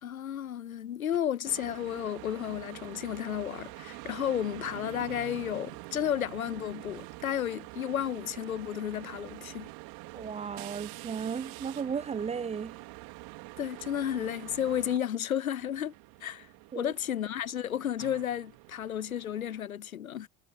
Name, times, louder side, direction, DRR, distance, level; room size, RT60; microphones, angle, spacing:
voice 1, 0.0-9.7 13.6-15.9 16.2-16.5 16.8-20.3, left 10 dB, 80° left, 0.9 m, -32 dB
sound 1, 1.1-1.2 1.5-15.0 15.6-19.6, right 26 dB, 55° right, 2.9 m, -46 dB
voice 2, 10.1-12.8 16.7-16.9, right 6 dB, 15° right, 0.5 m, -35 dB
figure-of-eight pair, 65°, 41 cm